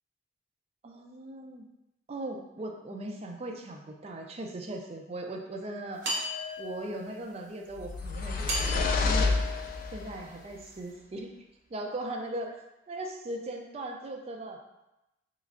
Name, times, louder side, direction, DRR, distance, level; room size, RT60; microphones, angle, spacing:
voice 1, 0.8-1.7 2.1-6.3 6.6-9.4 9.9-11.3 11.7-12.6 12.9-14.6, right 1 dB, 35° right, 2 dB, 0.3 m, -39 dB
sound 1, 6.0-7.1 8.5-10.3, left 2 dB, 70° right, 1.0 m, -35 dB
sound 2, 7.8-10.2, left 3 dB, 50° left, 0.3 m, -29 dB
3.3 x 3.0 x 2.4 m, 0.94 s
head